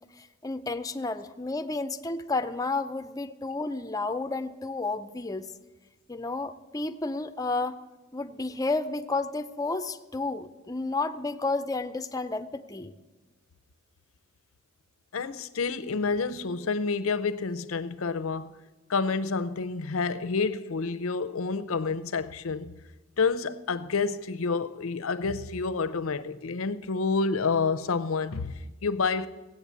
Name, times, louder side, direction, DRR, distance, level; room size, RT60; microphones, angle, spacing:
voice 1, 0.2-5.5 6.1-7.8 8.1-12.9, left 3 dB, 15° left, 0.5 m, -31 dB
voice 2, 15.1-18.5 18.9-22.7 23.2-29.3, left 4 dB, 85° left, 0.6 m, -29 dB
17.0 x 8.0 x 8.2 m
head